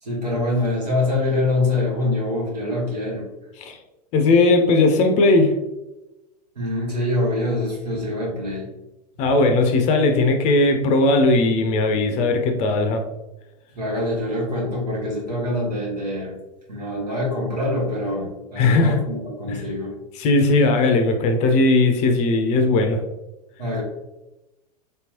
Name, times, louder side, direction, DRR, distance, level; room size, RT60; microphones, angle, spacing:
voice 1, 0.0-3.3 6.5-8.7 13.7-16.3 16.7-19.9 23.6-23.8, left 1 dB, 80° right, -4 dB, 1.4 m, -24 dB
voice 2, 4.1-5.5 9.2-13.0 18.6-19.0 19.5-19.6 20.2-23.0, left 2 dB, 35° left, 5 dB, 0.5 m, -18 dB
3.2 x 2.9 x 2.8 m, 0.99 s
figure-of-eight pair, 90°, 21 cm